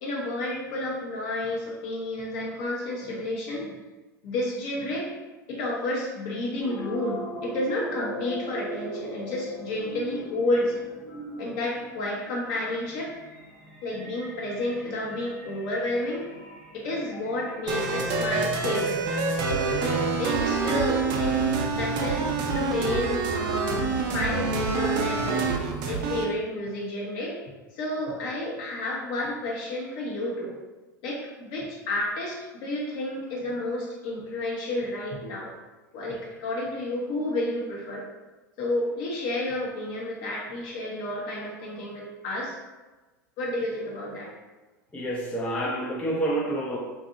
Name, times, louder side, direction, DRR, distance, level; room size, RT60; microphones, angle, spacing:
voice 1, 0.0-3.7 4.2-5.1 5.5-10.8 11.4-13.1 13.8-16.3 16.7-19.0 19.5-27.4 27.7-30.5 31.0-35.5 35.9-38.1 38.6-42.6 43.4-44.3, left 1 dB, 55° left, -4 dB, 0.9 m, -31 dB
sound 1, 6.6-21.2, equal, 30° left, 1.3 m, -41 dB
sound 2, 17.7-26.2, right 4 dB, 45° right, 0.5 m, -26 dB
voice 2, 44.9-46.8, right 1 dB, 10° left, -3 dB, 0.4 m, -28 dB
2.6 x 2.5 x 2.5 m, 1.2 s
hypercardioid pair, 90°, 10 cm